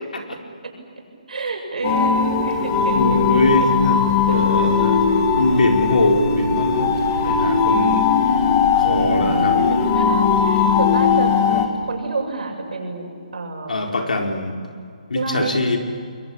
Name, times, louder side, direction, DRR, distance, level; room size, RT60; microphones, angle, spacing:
voice 1, 1.3-3.0 3.3-3.5 4.1-4.4 5.4-5.7 7.2-7.4 8.8-11.3 11.8-13.8 15.1-15.6, right 3 dB, 70° right, 2 dB, 7.5 m, -28 dB
sound 1, 1.8-11.7, left 6 dB, 20° left, 2.1 m, -19 dB
voice 2, 2.9-5.1 5.4-6.9 7.2-8.1 8.7-9.5 13.7-14.6 15.1-15.8, left 2 dB, 85° left, 2 dB, 4.5 m, -21 dB
sound 2, 2.9-11.2, left 2 dB, 50° left, 7.0 m, -34 dB
29.0 x 22.0 x 8.7 m, 2.3 s
hypercardioid pair, 170°, 4 cm